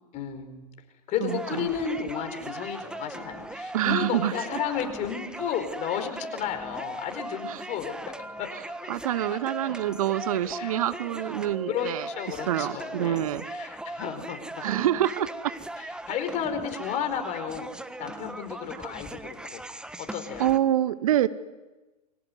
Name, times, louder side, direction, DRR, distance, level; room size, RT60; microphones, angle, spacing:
voice 1, 0.1-0.6 1.1-8.5 9.3-9.4 10.6-10.7 11.7-14.4 15.8-17.7 18.0-19.6 20.0-20.5, left 8 dB, 35° left, 8 dB, 4.5 m, -33 dB
voice 2, 1.2-1.7 3.7-4.4 7.5-7.6 8.9-13.4 14.6-15.5 18.7-18.9 20.4-21.3, right 12 dB, 55° right, 16 dB, 1.1 m, -26 dB
sound 1, 1.3-20.6, right 1 dB, 5° right, 1.4 m, -39 dB
29.0 x 23.5 x 8.1 m, 1.1 s
figure-of-eight pair, 95°, 21 cm